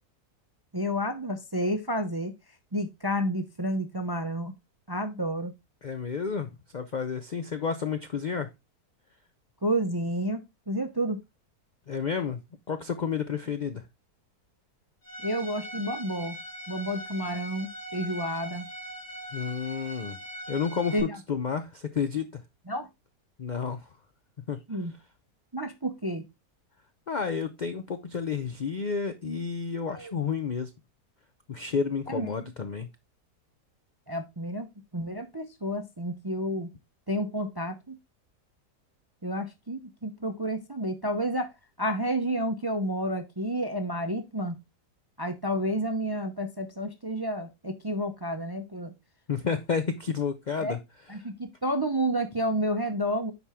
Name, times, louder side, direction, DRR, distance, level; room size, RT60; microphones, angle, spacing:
voice 1, 0.7-2.3 2.7-4.5 4.9-5.5 9.6-11.2 15.2-16.4 16.7-18.7 20.9-21.2 22.7-22.9 24.7-24.9 25.5-26.3 29.9-30.2 32.1-32.5 34.1-34.7 34.9-36.7 37.1-38.0 39.2-41.5 41.8-44.5 45.2-48.9 50.6-50.8 51.1-53.3, equal, 30° right, 0.4 m, -30 dB
voice 2, 5.8-8.5 11.9-12.4 12.7-13.8 19.3-20.2 20.5-22.3 23.4-23.9 24.5-24.6 27.1-30.7 31.5-32.9 49.3-50.8, left 6 dB, 65° left, 0.4 m, -30 dB
Bowed string instrument, 15.0-21.0, equal, 90° left, 3.5 m, -41 dB
9.8 x 4.4 x 3.5 m
omnidirectional pair, 1.6 m